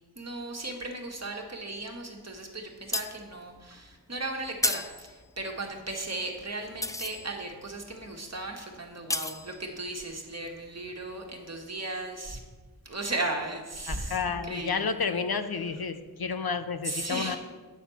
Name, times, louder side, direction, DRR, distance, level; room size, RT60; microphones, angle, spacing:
voice 1, 0.1-12.4 12.8-14.9 16.8-17.4, right 2 dB, 40° right, 2 dB, 1.4 m, -36 dB
sound 1, 2.7-11.2 11.6-11.7, left 2 dB, 10° left, 0.3 m, -35 dB
voice 2, 13.9-17.4, left 5 dB, 70° left, 9 dB, 0.7 m, -31 dB
8.3 x 4.3 x 7.0 m, 1.3 s
wide cardioid pair, 45°, 39 cm